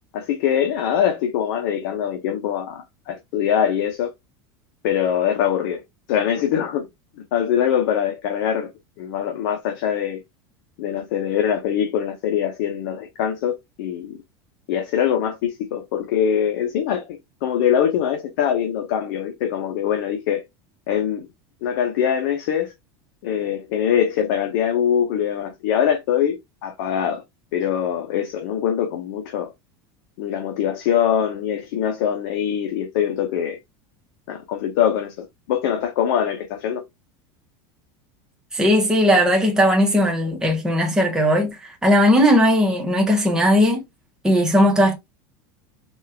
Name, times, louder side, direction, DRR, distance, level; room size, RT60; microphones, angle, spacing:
voice 1, 0.1-4.1 4.8-5.8 6.1-6.9 7.3-8.7 9.0-10.2 10.8-14.2 14.7-20.4 20.9-21.3 21.6-22.7 23.2-27.2 27.5-29.5 30.2-33.6 34.3-36.8, left 9 dB, 60° left, 0.9 m, -23 dB
voice 2, 38.5-43.8 44.2-44.9, equal, 5° right, 0.9 m, -17 dB
4.1 x 2.4 x 3.4 m
supercardioid pair, 170°, 11 cm